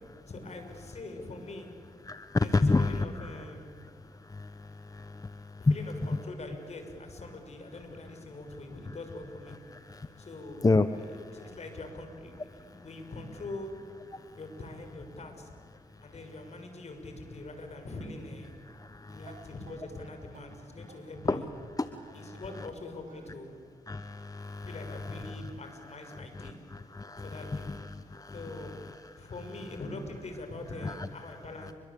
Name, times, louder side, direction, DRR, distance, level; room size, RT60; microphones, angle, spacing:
voice 1, 0.3-1.7 2.4-3.7 5.6-9.6 10.2-13.7 14.4-15.5 16.0-18.6 19.1-21.5 22.1-23.6 24.6-26.6 27.1-27.7 28.3-28.7 29.2-31.7, left 2 dB, 55° left, 6 dB, 6.1 m, -43 dB
voice 2, 2.0-5.8 6.1-6.2 8.8-9.0 9.7-10.3 10.6-11.6 12.5-12.9 14.1-14.4 15.9-16.2 18.6-19.5 20.8-20.9 21.3-21.4 21.8-22.7 23.9-25.5 25.8-29.3 30.8-31.7, left 3 dB, 25° left, 11 dB, 1.1 m, -32 dB
sound 1, 19.2-23.9, right 6 dB, 80° right, 2.6 m, -56 dB
29.5 x 23.5 x 8.6 m, 2.1 s
cardioid pair, 55°, 14 cm